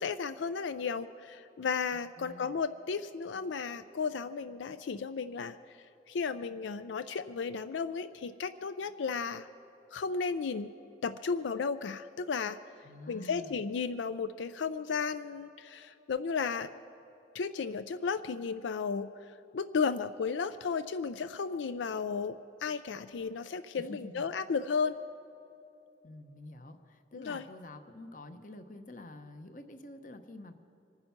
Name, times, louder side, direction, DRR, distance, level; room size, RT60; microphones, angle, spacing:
voice 1, 0.0-9.5 9.9-10.7 11.0-12.6 13.1-16.7 17.3-25.0 27.1-27.5, left 5 dB, 90° left, 12 dB, 0.4 m, -34 dB
voice 2, 1.9-2.5 12.8-13.6 23.8-24.3 26.0-30.5, left 2 dB, 45° left, 8 dB, 0.9 m, -48 dB
25.0 x 9.8 x 5.9 m, 3.0 s
head